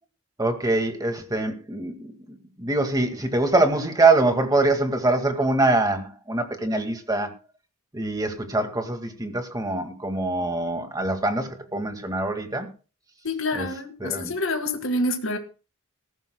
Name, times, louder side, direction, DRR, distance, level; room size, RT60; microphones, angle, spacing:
voice 1, 0.4-7.3 7.9-12.7 13.6-13.7 14.0-14.3, right 2 dB, 15° right, 5 dB, 2.0 m, -24 dB
voice 2, 13.2-15.4, left 2 dB, 65° left, 5 dB, 1.9 m, -27 dB
19.0 x 15.0 x 2.3 m, 0.33 s
head